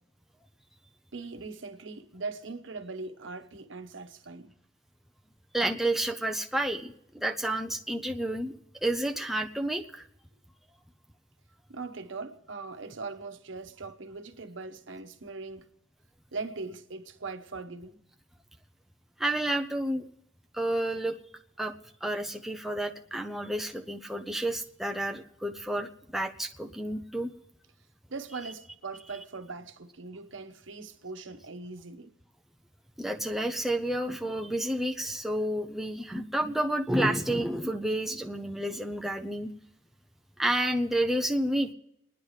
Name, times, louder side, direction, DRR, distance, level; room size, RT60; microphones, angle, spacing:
voice 1, 1.1-4.5 11.7-15.7 16.3-18.0 28.1-32.1, right 3 dB, 75° right, 1.0 m, -40 dB
voice 2, 5.5-8.5 8.8-10.1 19.2-20.1 20.5-21.2 21.6-21.7 22.0-27.3 33.0-39.5 40.4-41.7, right 1 dB, ahead, 0.5 m, -30 dB
29.5 x 10.0 x 3.2 m
head